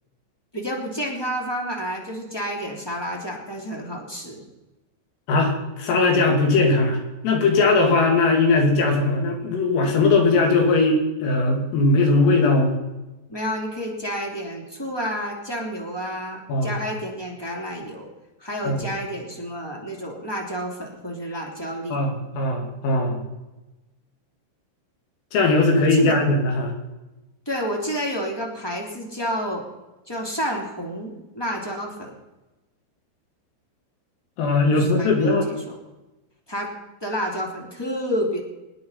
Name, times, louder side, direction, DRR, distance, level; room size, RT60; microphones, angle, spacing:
voice 1, 0.5-4.4 13.3-18.1 18.4-22.0 25.7-26.2 27.4-29.6 30.1-32.2 34.7-35.8 36.5-36.7 37.0-38.4, equal, 10° left, -1 dB, 1.8 m, -30 dB
voice 2, 5.3-7.0 7.2-12.8 16.5-16.7 18.7-18.8 21.9-23.3 25.3-26.7 34.4-35.5, left 3 dB, 75° left, 2 dB, 5.5 m, -19 dB
26.0 x 9.7 x 5.7 m, 1.1 s
omnidirectional pair, 5.9 m